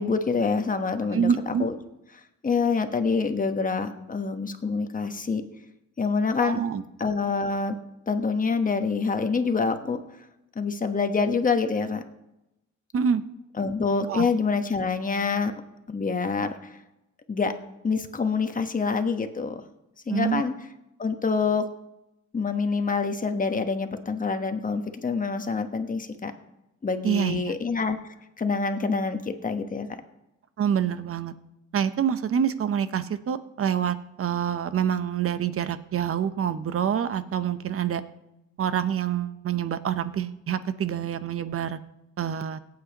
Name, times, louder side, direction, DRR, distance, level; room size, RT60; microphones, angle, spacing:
voice 1, 0.0-1.7 2.4-5.4 6.0-6.6 7.0-7.7 8.1-10.0 10.5-12.0 13.6-15.5 15.9-16.5 17.3-17.5 17.8-19.6 20.1-20.5 21.0-21.7 22.3-26.3 26.8-29.9, left 4 dB, 25° left, 7 dB, 1.2 m, -26 dB
voice 2, 1.1-1.7 6.4-6.8 12.9-13.2 14.1-14.2 20.1-20.4 27.0-27.5 30.6-31.3 31.7-38.0 38.6-41.8 42.2-42.6, right 8 dB, 45° right, 12 dB, 0.8 m, -26 dB
17.5 x 8.7 x 2.9 m, 0.89 s
cardioid pair, 90°, 30 cm